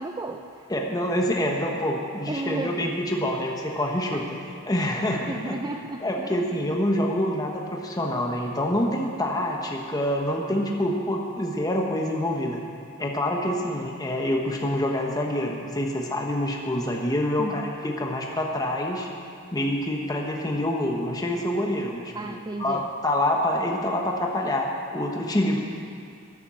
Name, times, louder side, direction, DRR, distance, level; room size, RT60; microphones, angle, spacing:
voice 1, 0.0-0.7 2.3-3.0 4.1-4.3 5.3-6.4 17.4-17.8 22.1-22.9, right 2 dB, 20° right, 4 dB, 0.4 m, -34 dB
voice 2, 0.7-4.2 4.7-5.6 6.0-12.6 13.0-19.1 19.5-25.6, left 1 dB, 20° left, 0 dB, 1.0 m, -26 dB
10.5 x 10.0 x 7.5 m, 2.4 s
head